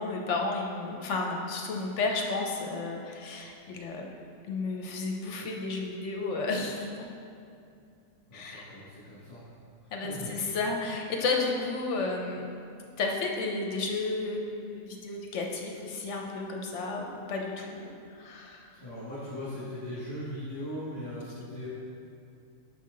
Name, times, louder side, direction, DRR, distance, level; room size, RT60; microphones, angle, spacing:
voice 1, 0.0-4.1 4.5-6.9 8.3-8.7 9.9-12.5 13.0-18.7, left 3 dB, 65° left, 1 dB, 0.9 m, -32 dB
voice 2, 8.3-9.4 9.8-10.3 18.8-21.7, left 1 dB, 30° left, -11 dB, 1.5 m, -39 dB
6.3 x 5.6 x 3.8 m, 2.4 s
omnidirectional pair, 1.5 m